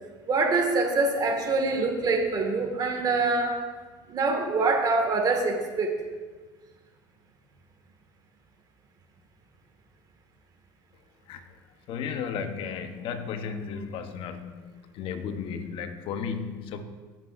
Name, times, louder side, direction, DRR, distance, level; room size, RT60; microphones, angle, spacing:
voice 1, 0.3-3.6 4.1-5.9, right 3 dB, 40° right, 3 dB, 2.1 m, -25 dB
voice 2, 11.9-16.8, left 6 dB, 60° left, 7 dB, 1.1 m, -34 dB
18.0 x 7.5 x 2.7 m, 1.4 s
supercardioid pair, 95°, 10 cm